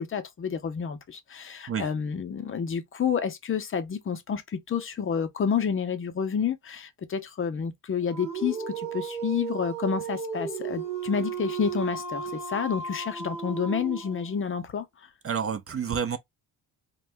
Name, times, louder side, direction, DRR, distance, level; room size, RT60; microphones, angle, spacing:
voice 1, 0.0-14.9, left 7 dB, 30° left, 0.5 m, -29 dB
Dog, 8.1-14.4, right 6 dB, 15° right, 0.8 m, -34 dB
voice 2, 15.2-16.2, right 7 dB, 35° right, 0.4 m, -29 dB
2.6 x 2.2 x 3.2 m
cardioid pair, 120°, 42 cm